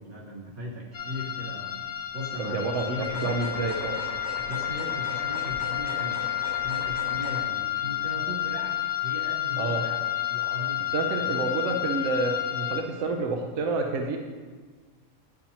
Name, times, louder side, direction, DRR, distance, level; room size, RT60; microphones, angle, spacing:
voice 1, 0.0-3.3 4.5-6.3 6.5-10.9 11.2-11.5, equal, 90° right, -5 dB, 1.9 m, -38 dB
sound 1, 0.9-12.8, left 13 dB, 45° left, 0.8 m, -30 dB
voice 2, 2.4-4.0 9.6-9.8 10.9-14.2, right 3 dB, 70° right, 2 dB, 0.9 m, -28 dB
sound 2, 3.0-7.4, equal, 15° right, 0.7 m, -38 dB
9.8 x 4.3 x 2.8 m, 1.5 s
omnidirectional pair, 1.4 m